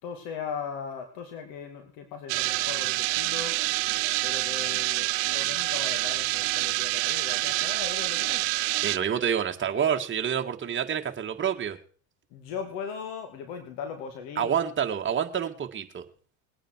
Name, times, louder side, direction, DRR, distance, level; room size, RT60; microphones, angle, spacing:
voice 1, 0.0-3.6 4.2-8.7 12.3-14.5, left 6 dB, 70° left, 5 dB, 2.4 m, -38 dB
sound 1, 2.3-9.0, right 22 dB, 70° right, 0.8 m, -27 dB
voice 2, 8.8-11.8 14.4-16.0, right 8 dB, 30° right, 4 dB, 1.8 m, -28 dB
21.0 x 9.0 x 4.6 m, 0.43 s
supercardioid pair, 90°, 40 cm